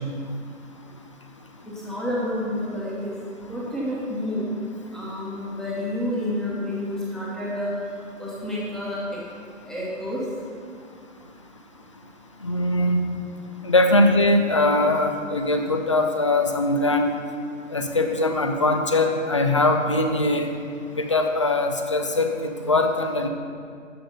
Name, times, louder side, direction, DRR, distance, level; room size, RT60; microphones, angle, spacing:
voice 1, 1.7-3.1 3.5-4.4 4.9-7.7 8.2-9.2 9.6-10.3, left 1 dB, ahead, -6 dB, 1.2 m, -29 dB
voice 2, 12.4-13.0 13.6-17.1 17.7-20.5 21.0-22.3 22.7-23.3, left 2 dB, 25° left, 5 dB, 0.4 m, -21 dB
13.0 x 5.0 x 5.4 m, 2.2 s
figure-of-eight pair, 135°, 40 cm